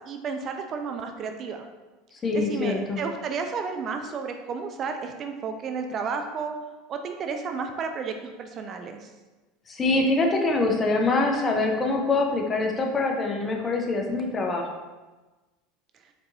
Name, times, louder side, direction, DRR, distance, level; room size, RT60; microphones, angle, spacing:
voice 1, 0.1-1.7 2.3-6.5 6.9-9.1, right 5 dB, 40° right, 5 dB, 0.3 m, -32 dB
voice 2, 2.2-3.0 9.7-14.7, left 3 dB, 25° left, 2 dB, 0.7 m, -24 dB
4.5 x 2.9 x 2.6 m, 1.2 s
hypercardioid pair, 80°, 0 cm